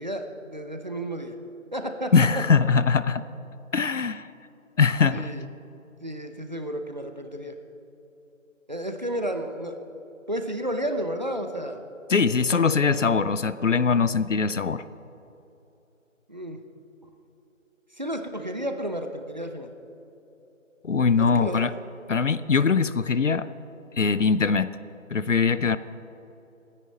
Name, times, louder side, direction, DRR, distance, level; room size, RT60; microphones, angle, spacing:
voice 1, 0.0-1.4 1.7-2.3 5.1-5.4 6.0-7.6 8.7-9.8 10.3-11.8 12.5-12.6 16.3-16.6 18.0-19.7 21.2-21.6 22.8-23.0, right 1 dB, 35° right, 5 dB, 0.8 m, -32 dB
voice 2, 2.1-3.2 3.7-4.3 4.8-5.3 12.1-14.8 20.8-21.7 22.1-23.5 24.0-24.8 25.1-25.8, left 5 dB, 65° left, 14 dB, 0.6 m, -22 dB
29.5 x 10.0 x 4.2 m, 3.0 s
figure-of-eight pair, 170°, 41 cm